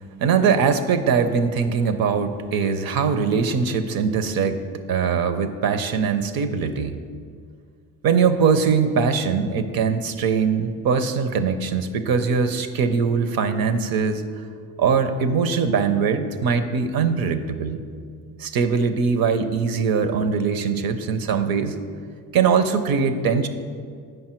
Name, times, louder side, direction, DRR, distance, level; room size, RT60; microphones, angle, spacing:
voice 1, 0.2-4.6 4.9-6.9 8.0-14.2 14.8-17.8 18.4-21.8 22.3-23.5, right 6 dB, 60° right, 10 dB, 0.7 m, -21 dB
7.8 x 5.5 x 4.4 m, 2.1 s
supercardioid pair, 60°, 39 cm